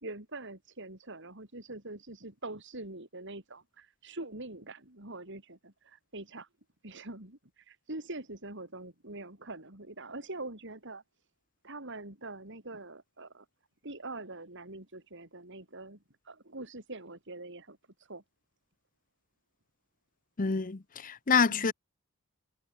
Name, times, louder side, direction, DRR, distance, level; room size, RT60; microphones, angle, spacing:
voice 1, 0.0-6.5 6.8-11.0 11.6-13.5 13.8-16.0 16.2-18.2 21.5-21.7, right 2 dB, 55° right, 4.7 m, -44 dB
voice 2, 20.4-21.7, left 5 dB, 40° left, 0.7 m, -27 dB
head